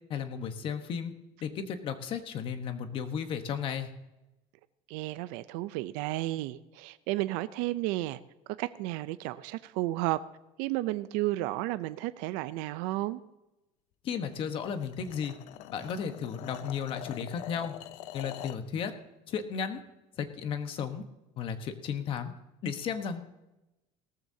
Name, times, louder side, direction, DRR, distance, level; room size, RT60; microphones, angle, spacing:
voice 1, 0.1-1.1 1.4-3.9 14.0-15.4 15.7-17.7 18.1-18.9 19.3-19.8 20.2-21.0 21.4-22.3 22.6-23.2, left 7 dB, 40° left, 8 dB, 1.2 m, -34 dB
voice 2, 4.9-8.2 8.6-10.2 10.6-13.2, right 17 dB, 75° right, 13 dB, 0.5 m, -32 dB
sound 1, 14.3-18.7, left 13 dB, 60° left, 0.6 m, -45 dB
18.0 x 14.0 x 2.8 m, 0.97 s
cardioid pair, 160°, 14 cm